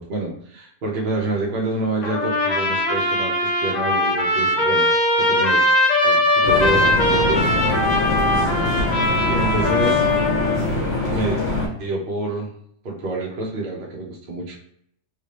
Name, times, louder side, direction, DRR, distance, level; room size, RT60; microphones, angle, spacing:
voice 1, 0.0-4.9 5.2-5.7 6.0-7.5 9.2-10.0 11.1-11.4 11.8-12.5 12.8-14.6, right 2 dB, 50° right, -2 dB, 0.9 m, -27 dB
Trumpet, 2.0-10.6, left 1 dB, 45° left, 0.6 m, -20 dB
sound 1, 6.4-11.7, left 2 dB, 70° left, 1.6 m, -23 dB
3.2 x 2.7 x 3.3 m, 0.67 s
omnidirectional pair, 1.3 m